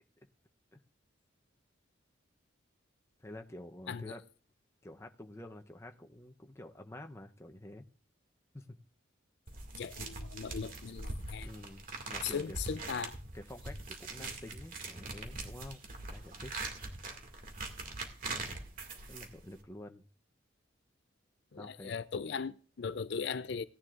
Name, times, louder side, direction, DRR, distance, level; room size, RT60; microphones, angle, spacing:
voice 1, 3.2-4.2 4.8-7.9 8.5-8.7 11.4-12.6 13.3-15.8 16.1-16.5 19.1-20.0 21.6-22.0, left 1 dB, 15° left, 0.8 m, -49 dB
sound 1, 9.5-19.6, right 3 dB, 45° right, 2.1 m, -42 dB
voice 2, 9.7-11.5 12.2-13.2 21.5-23.6, left 6 dB, 60° left, 0.4 m, -38 dB
17.5 x 10.5 x 2.5 m
head